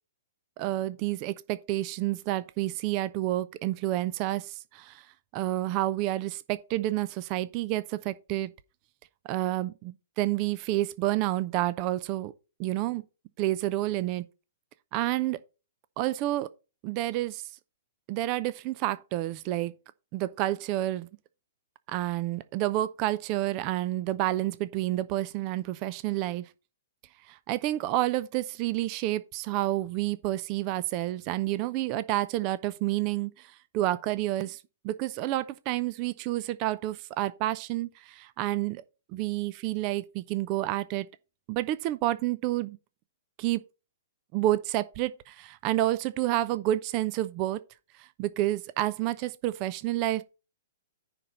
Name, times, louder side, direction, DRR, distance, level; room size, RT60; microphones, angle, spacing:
voice 1, 0.6-5.1 5.3-8.5 9.2-12.3 12.6-13.0 13.4-14.2 14.9-15.4 16.0-16.5 16.8-17.4 18.1-19.7 20.1-21.1 21.9-26.4 27.3-38.8 39.1-41.1 41.5-42.8 43.4-43.6 44.3-47.6 48.0-50.2, right 15 dB, 35° right, 0.6 m, -29 dB
9.9 x 4.3 x 5.2 m
figure-of-eight pair, 115°, 0 cm